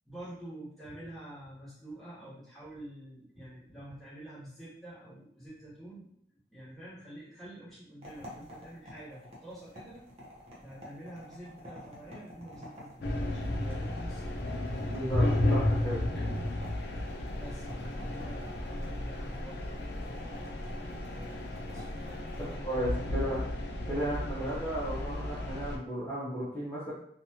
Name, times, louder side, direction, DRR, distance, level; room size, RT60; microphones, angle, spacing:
voice 1, 0.0-6.1 6.5-10.0 10.6-14.8 16.1-16.3 17.3-20.5 20.8-21.4 21.7-23.4, right 1 dB, ahead, -10 dB, 1.3 m, -48 dB
sound 1, 8.0-22.6, left 1 dB, 35° right, 0.8 m, -50 dB
sound 2, 13.0-25.8, left 1 dB, 80° left, 0.5 m, -33 dB
voice 2, 14.9-16.0 22.6-23.4 23.9-26.9, right 1 dB, 20° left, -11 dB, 0.7 m, -34 dB
2.8 x 2.3 x 2.8 m, 0.68 s
head